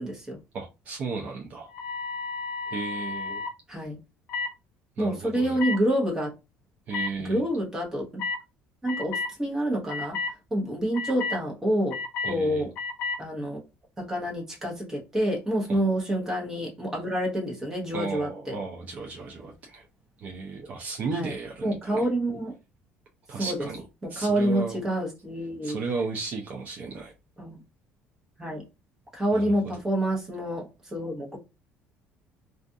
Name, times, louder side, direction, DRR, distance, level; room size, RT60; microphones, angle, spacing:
voice 1, 0.0-0.4 3.7-4.0 5.0-6.3 7.2-8.1 8.8-12.7 13.2-13.6 14.0-18.6 21.1-21.4 21.6-22.5 23.3-23.7 24.0-25.8 27.4-27.6 28.4-28.6 29.1-31.4, right 1 dB, 10° right, 0.9 m, -28 dB
voice 2, 0.5-1.7 2.7-3.5 5.0-5.6 6.9-7.4 12.2-12.7 15.7-15.8 17.9-19.9 20.2-22.0 23.3-23.8 24.1-24.8 25.6-27.1 29.3-29.5, right 4 dB, 40° right, 0.5 m, -34 dB
sound 1, 1.7-3.5 4.3-4.5 5.6-5.8 6.9-7.1 8.2-8.4 8.9-9.3 9.9-10.3 10.9-11.4 11.9-12.3 12.8-13.2, left 4 dB, 65° left, 0.5 m, -31 dB
2.4 x 2.3 x 2.6 m
cardioid pair, 165°, 4 cm